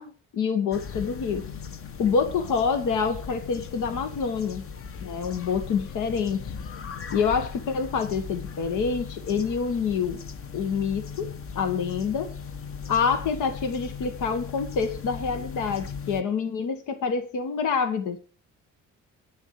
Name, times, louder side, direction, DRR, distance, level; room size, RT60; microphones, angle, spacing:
voice 1, 0.0-1.5 2.0-4.6 5.0-6.4 7.1-10.2 10.5-12.3 12.9-18.2, left 5 dB, 85° left, 8 dB, 1.6 m, -27 dB
sound 1, 0.7-16.2, left 6 dB, 45° left, 1.0 m, -38 dB
10.5 x 7.3 x 6.6 m, 0.38 s
cardioid pair, 90°, 30 cm